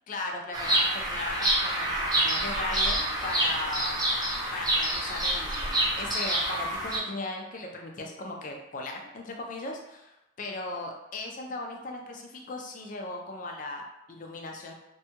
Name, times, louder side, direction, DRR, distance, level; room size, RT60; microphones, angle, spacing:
voice 1, 0.1-4.0 4.5-14.7, left 2 dB, 40° left, 1 dB, 0.4 m, -37 dB
Bird vocalization bird call bird song, 0.5-7.0, right 1 dB, 20° right, 0.5 m, -27 dB
2.6 x 2.2 x 2.8 m, 0.93 s
head